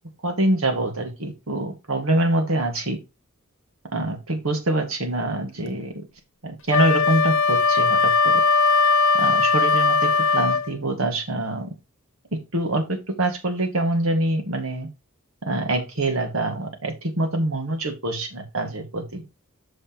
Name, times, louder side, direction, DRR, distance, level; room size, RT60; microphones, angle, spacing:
voice 1, 0.2-3.0 3.9-5.9 6.4-8.3 9.2-11.7 12.3-14.9 15.4-19.2, right 2 dB, 70° right, 5 dB, 2.1 m, -25 dB
Wind instrument woodwind instrument, 6.7-10.7, left 4 dB, 65° left, 1.0 m, -19 dB
7.9 x 6.3 x 3.0 m, 0.25 s
head